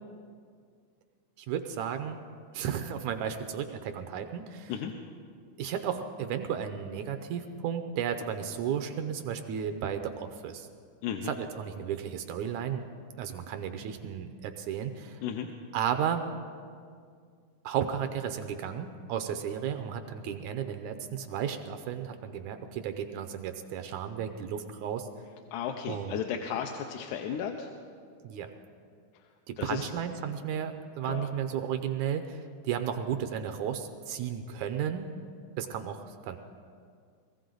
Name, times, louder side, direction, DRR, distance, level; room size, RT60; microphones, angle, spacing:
voice 1, 1.4-2.2 2.5-4.7 5.6-10.7 11.3-12.8 13.2-15.2 15.7-16.3 17.6-25.1 25.9-26.2 28.2-28.5 29.5-35.1 35.6-36.4, right 8 dB, 80° right, 8 dB, 1.9 m, -34 dB
voice 2, 11.0-11.3 15.2-15.5 25.5-27.7 29.1-29.3 29.6-29.9 31.0-31.3, left 8 dB, 80° left, 4 dB, 2.1 m, -34 dB
19.5 x 15.0 x 3.9 m, 2.1 s
omnidirectional pair, 3.6 m